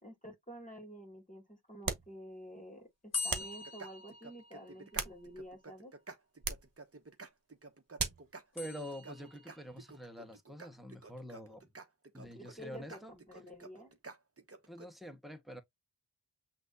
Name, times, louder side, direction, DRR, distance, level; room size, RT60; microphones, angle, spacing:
voice 1, 0.0-5.9 12.3-14.0, equal, 20° left, 2.1 m, -50 dB
sound 1, 1.8-2.2 3.3-3.6 4.7-5.6 6.4-6.7 8.0-8.3, right 4 dB, 50° right, 1.2 m, -38 dB
sound 2, 3.1-5.1 8.6-9.6, left 4 dB, 35° left, 1.7 m, -42 dB
sound 3, 3.4-14.9, right 3 dB, 30° right, 1.0 m, -51 dB
voice 2, 8.5-11.7 12.1-13.1 14.7-15.6, equal, ahead, 1.2 m, -46 dB
5.9 x 2.8 x 2.6 m
wide cardioid pair, 55°, 44 cm